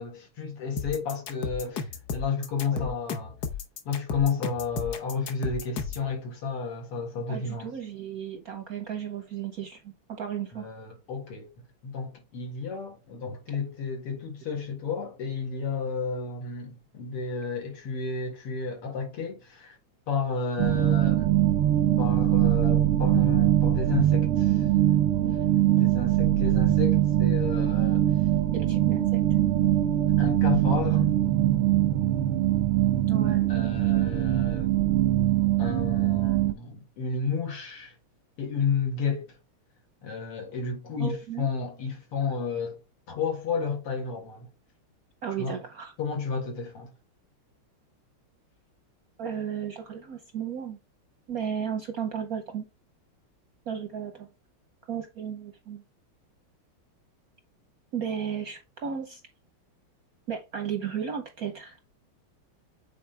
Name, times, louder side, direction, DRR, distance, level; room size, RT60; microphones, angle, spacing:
voice 1, 0.0-3.3 3.9-7.7 10.5-11.5 11.8-19.8 20.1-21.3 22.0-24.7 25.7-28.1 30.2-31.1 33.5-34.7 35.6-37.9 38.4-39.4 40.0-42.8 43.1-44.5 45.4-45.6 46.0-46.9, left 5 dB, 85° left, 2.7 m, -32 dB
sound 1, 0.8-6.1, left 6 dB, 60° left, 1.2 m, -34 dB
voice 2, 7.3-10.7 28.5-29.2 33.1-33.5 41.0-41.5 45.2-45.9 49.2-50.8 51.3-52.6 53.7-54.3 54.9-55.8 57.9-59.2 60.3-61.8, right 8 dB, 65° right, 0.9 m, -34 dB
sound 2, 20.6-36.5, right 13 dB, 90° right, 1.7 m, -22 dB
8.4 x 4.1 x 3.3 m
omnidirectional pair, 2.4 m